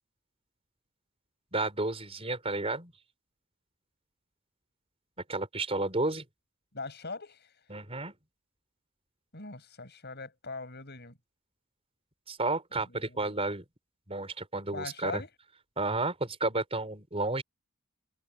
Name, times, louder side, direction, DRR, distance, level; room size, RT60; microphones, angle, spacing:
voice 1, 1.5-2.9 5.3-6.2 7.7-8.1 12.3-13.6 14.1-15.2 15.8-17.4, right 2 dB, 25° right, 4.9 m, -31 dB
voice 2, 6.7-7.6 9.3-11.2 12.8-13.4 14.7-15.3, left 3 dB, 50° left, 7.9 m, -41 dB
head